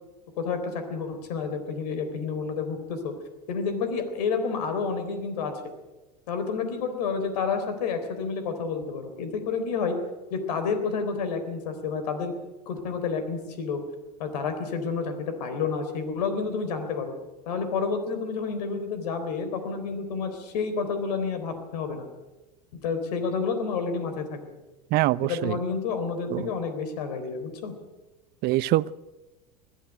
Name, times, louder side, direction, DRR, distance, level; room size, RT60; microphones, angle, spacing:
voice 1, 0.4-3.1 3.5-5.6 6.3-10.0 10.3-12.3 12.7-13.8 14.2-17.1 17.5-22.1 22.8-24.4 25.2-27.7, left 5 dB, 75° left, 8 dB, 3.8 m, -29 dB
voice 2, 24.9-25.6 26.3-26.5 28.4-28.9, right 17 dB, 50° right, 17 dB, 0.7 m, -24 dB
21.5 x 14.5 x 9.2 m, 1.1 s
hypercardioid pair, 95°, 21 cm